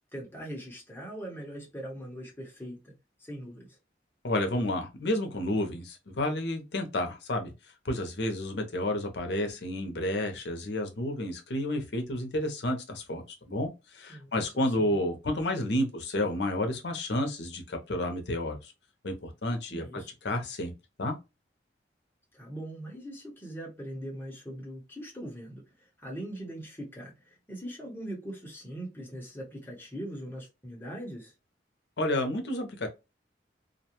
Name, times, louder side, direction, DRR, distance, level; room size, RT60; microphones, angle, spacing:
voice 1, 0.1-2.9 3.2-3.8 14.1-14.5 14.8-15.0 19.7-20.1 22.3-31.3, right 1 dB, 10° left, 0.9 m, -41 dB
voice 2, 4.2-7.5 7.8-18.7 19.0-20.7 21.0-21.1 32.0-32.9, left 1 dB, 70° left, 0.7 m, -31 dB
2.5 x 2.2 x 2.9 m
head